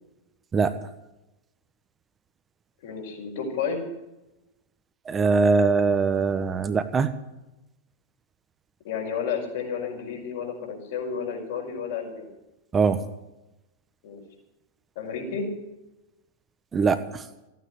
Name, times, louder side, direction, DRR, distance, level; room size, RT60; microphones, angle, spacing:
voice 1, 2.8-3.8 8.8-12.3 14.0-14.2 15.0-15.5, left 6 dB, 60° left, 1 dB, 5.1 m, -31 dB
voice 2, 5.0-7.1 12.7-13.0 16.7-17.2, right 4 dB, 20° right, 10 dB, 1.2 m, -22 dB
15.0 x 9.3 x 9.7 m, 0.98 s
figure-of-eight pair, 90°, 0 cm